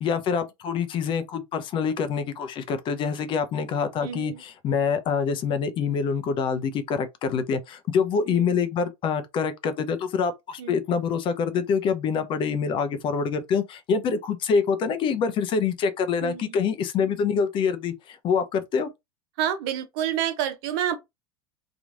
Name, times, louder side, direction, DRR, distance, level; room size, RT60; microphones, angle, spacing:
voice 1, 0.0-18.9, left 6 dB, 35° left, 0.5 m, -26 dB
voice 2, 4.0-4.4 8.3-8.5 10.6-10.8 16.2-16.6 19.4-21.0, right 10 dB, 50° right, 0.6 m, -28 dB
3.0 x 2.4 x 2.5 m
figure-of-eight pair, 80°, 15 cm